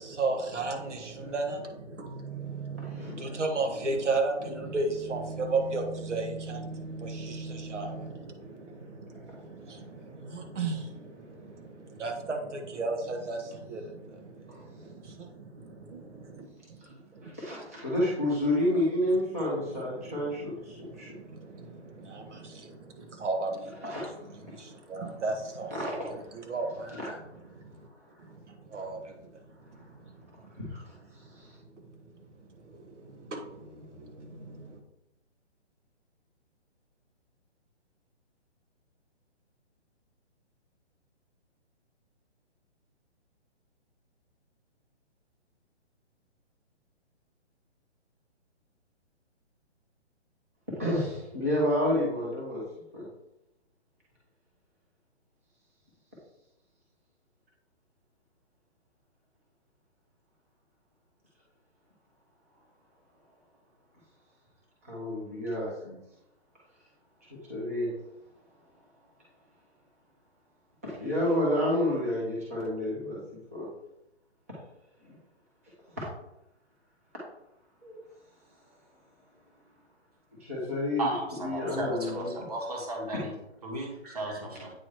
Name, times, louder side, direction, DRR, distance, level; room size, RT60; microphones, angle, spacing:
voice 1, 0.0-17.4 19.1-26.0 26.3-27.0 27.5-27.9 28.2-30.5 31.3-31.4 31.7-34.8, right 3 dB, 85° right, 4 dB, 1.5 m, -36 dB
voice 2, 2.8-3.2 9.1-9.2 14.5-14.6 17.2-21.1 23.8-24.1 24.4-24.6 25.7-26.5 27.0-27.1 27.9-28.0 30.6-30.8 31.1-31.6 50.7-52.6 52.9-53.0 64.8-65.7 67.5-67.9 70.8-73.2 73.5-73.7 75.0-75.2 76.0-76.1 77.8-78.0 80.4-81.1 81.4-82.3 83.1-83.3 84.0-84.3, left 1 dB, 15° right, -6 dB, 0.8 m, -30 dB
voice 3, 81.0-83.3 83.6-84.7, right 2 dB, 35° right, 1 dB, 1.3 m, -34 dB
8.7 x 2.9 x 4.7 m, 0.87 s
hypercardioid pair, 180°, 35 cm